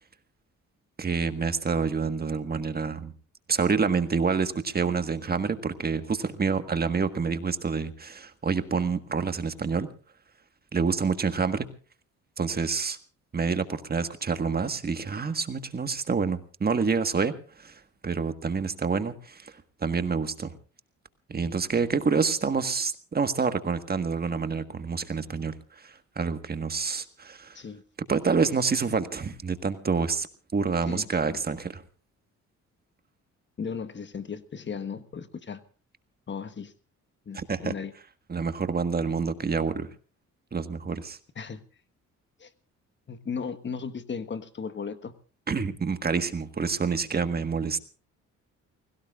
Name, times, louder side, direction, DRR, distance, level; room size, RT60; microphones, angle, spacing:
voice 1, 1.0-3.1 3.5-9.9 10.7-11.7 12.4-13.0 13.3-19.5 19.8-20.5 21.3-25.5 25.8-27.6 28.1-30.3 30.5-31.8 37.3-37.7 38.3-39.9 40.5-41.2 45.5-47.8, right 5 dB, 30° right, 1.6 m, -27 dB
voice 2, 30.9-31.4 33.6-35.6 36.3-36.7 37.3-37.9 41.4-41.6 42.4-42.5 43.1-45.1, left 6 dB, 40° left, 1.3 m, -36 dB
29.5 x 17.5 x 2.5 m
cardioid pair, 90°, 30 cm